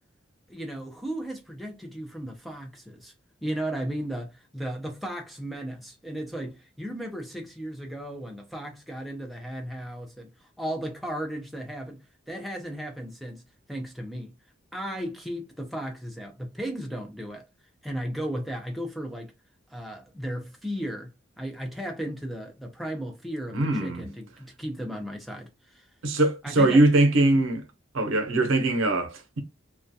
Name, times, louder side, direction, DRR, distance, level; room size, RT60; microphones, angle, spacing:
voice 1, 0.5-3.1 3.4-13.4 13.7-14.3 14.7-17.5 17.8-19.3 19.7-25.9 26.4-26.9 27.3-27.4, equal, ahead, 0.4 m, -35 dB
voice 2, 23.5-24.0 26.0-27.6 27.9-29.4, right 2 dB, 85° right, 0.6 m, -22 dB
2.3 x 2.1 x 2.6 m
head